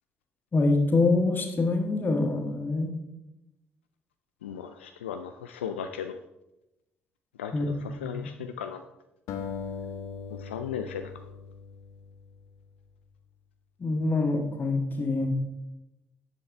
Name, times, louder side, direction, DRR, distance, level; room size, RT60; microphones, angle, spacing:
voice 1, 0.5-2.9 7.5-8.3 13.8-15.3, left 3 dB, 30° left, 3 dB, 1.6 m, -25 dB
voice 2, 4.4-6.1 7.4-7.7 8.0-8.8 10.4-11.0, left 8 dB, 75° left, 7 dB, 0.3 m, -36 dB
sound 1, 9.3-12.5, left 6 dB, 60° left, 0.8 m, -39 dB
9.6 x 7.6 x 3.3 m, 0.92 s
figure-of-eight pair, 45°, 6 cm